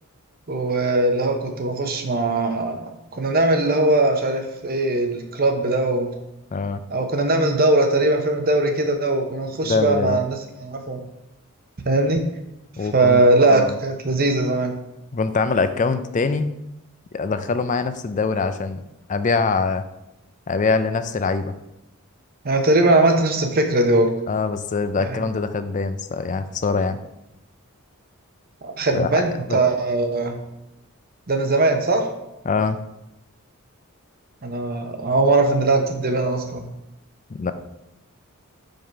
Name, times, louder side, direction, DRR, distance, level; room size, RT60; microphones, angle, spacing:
voice 1, 0.5-6.1 6.9-11.0 11.8-12.2 12.9-14.8 22.4-24.1 25.0-25.2 28.6-30.4 31.3-32.1 34.4-36.7, right 2 dB, 40° right, 5 dB, 0.8 m, -20 dB
voice 2, 9.6-10.2 12.8-13.2 13.5-13.8 15.1-16.5 17.1-18.8 19.1-19.8 20.5-21.5 24.3-27.0 28.9-29.6 32.5-32.8 37.3-37.5, left 4 dB, 35° left, 10 dB, 0.4 m, -23 dB
5.6 x 5.3 x 4.5 m, 0.87 s
head